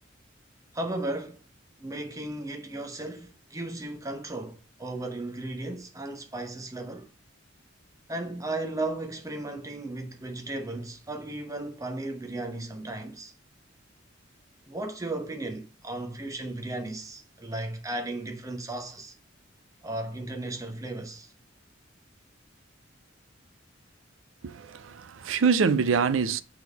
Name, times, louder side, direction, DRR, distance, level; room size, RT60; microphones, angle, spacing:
voice 1, 0.7-1.4 1.8-7.1 8.1-13.3 14.7-19.1 19.8-21.3, right 2 dB, 15° right, 0.9 m, -35 dB
voice 2, 24.4-26.4, right 5 dB, 90° right, 0.5 m, -25 dB
6.0 x 3.6 x 4.6 m
head